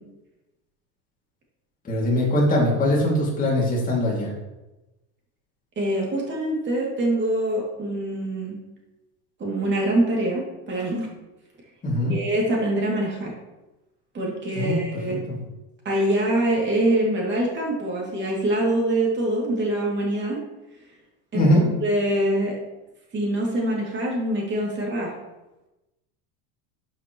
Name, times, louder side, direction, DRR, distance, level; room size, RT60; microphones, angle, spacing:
voice 1, 1.8-4.3 11.8-12.2 14.5-14.9 21.3-21.6, left 1 dB, 20° left, -4 dB, 2.5 m, -21 dB
voice 2, 5.8-8.6 9.4-11.1 12.1-13.3 14.1-15.2 15.8-20.4 21.3-21.5 21.8-22.5 23.1-25.1, right 1 dB, 25° right, -2 dB, 2.6 m, -24 dB
11.5 x 5.9 x 3.1 m, 1.0 s
supercardioid pair, 135°, 41 cm